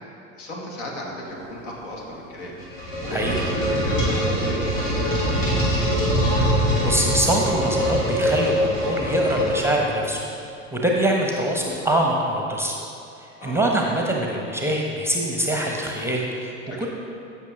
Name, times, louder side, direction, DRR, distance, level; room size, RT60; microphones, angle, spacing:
voice 1, 0.4-2.5 3.0-5.4 13.4-13.8 16.7-16.9, equal, 60° left, -2 dB, 2.0 m, -34 dB
sound 1, 2.4-10.1, equal, 75° left, 2.5 m, -23 dB
voice 2, 3.1-3.4 6.5-10.2 10.7-12.8 13.2-16.5 16.8-16.9, right 1 dB, 5° right, 0 dB, 0.9 m, -24 dB
14.5 x 6.0 x 3.6 m, 2.6 s
figure-of-eight pair, 70°, 38 cm